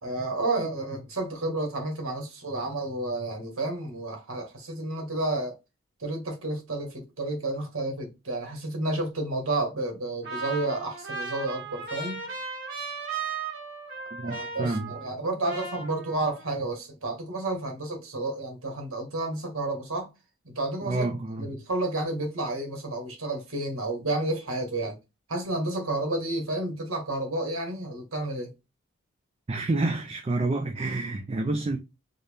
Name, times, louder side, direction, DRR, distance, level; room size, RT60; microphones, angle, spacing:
voice 1, 0.0-5.6 6.0-12.3 14.2-20.1 20.4-21.1 21.4-25.0 25.3-28.5, right 2 dB, 80° right, 1.3 m, -31 dB
Trumpet, 10.2-15.2 15.4-16.5, right 4 dB, 50° right, 2.1 m, -36 dB
voice 2, 14.1-14.9 20.8-21.6 29.5-31.8, right 2 dB, 30° right, 0.4 m, -29 dB
4.1 x 2.1 x 3.3 m
head